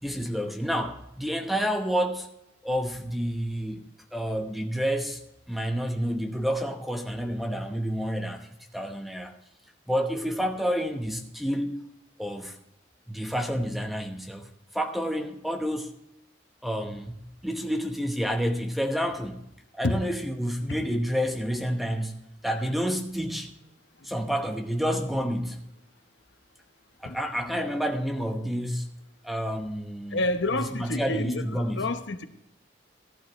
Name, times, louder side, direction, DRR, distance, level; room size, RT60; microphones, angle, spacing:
voice 1, 0.0-2.3 2.6-3.8 4.1-5.2 5.5-9.3 9.9-11.8 12.2-12.6 13.1-15.9 16.6-17.1 17.4-19.5 19.7-23.5 24.0-25.6 27.0-28.9 29.2-30.2 30.7-31.9, equal, ahead, 1.0 m, -29 dB
voice 2, 30.1-32.3, left 2 dB, 75° left, 0.9 m, -29 dB
15.0 x 11.5 x 3.1 m
head